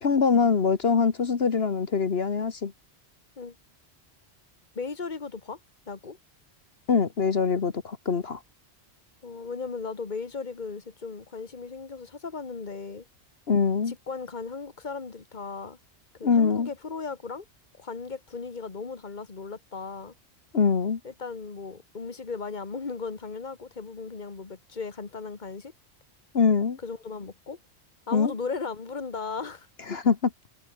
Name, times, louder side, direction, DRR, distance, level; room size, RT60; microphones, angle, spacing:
voice 1, 0.0-2.7 6.9-8.4 13.5-13.9 16.2-16.7 20.5-21.0 26.3-26.8 28.1-28.3 29.9-30.3, left 5 dB, 70° left, 1.7 m, -23 dB
voice 2, 4.7-5.6 5.9-6.2 9.2-13.1 13.9-15.8 16.2-17.4 17.8-20.1 21.0-25.7 26.8-27.6 28.1-29.7, left 4 dB, 45° left, 1.9 m, -36 dB
omnidirectional pair, 1.1 m